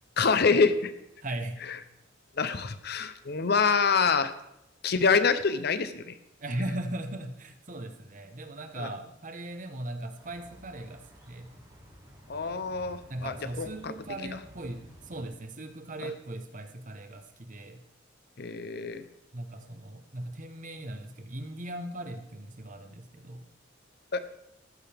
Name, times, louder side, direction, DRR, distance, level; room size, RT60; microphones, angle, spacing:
voice 1, 0.2-0.9 2.4-4.3 4.8-6.1 8.8-8.9 12.3-13.9 16.0-16.1 18.4-19.0 24.1-24.2, left 5 dB, 55° left, 12 dB, 0.7 m, -26 dB
voice 2, 1.2-1.6 6.4-11.5 13.1-17.8 19.3-23.5, right 1 dB, 45° right, 7 dB, 1.2 m, -38 dB
sound 1, 10.2-15.3, equal, 20° right, 3.6 m, -53 dB
14.5 x 12.0 x 3.5 m, 0.85 s
head